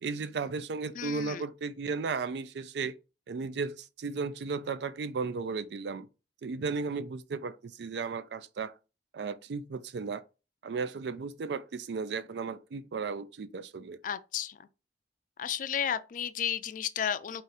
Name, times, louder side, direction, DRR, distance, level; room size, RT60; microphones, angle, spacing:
voice 1, 0.0-3.0 3.3-6.1 6.4-8.7 9.1-10.2 10.6-14.0, right 4 dB, 70° right, 0.4 m, -35 dB
voice 2, 1.0-1.4 14.0-14.6 15.4-17.4, left 9 dB, 50° left, 0.3 m, -33 dB
3.9 x 2.5 x 4.0 m
head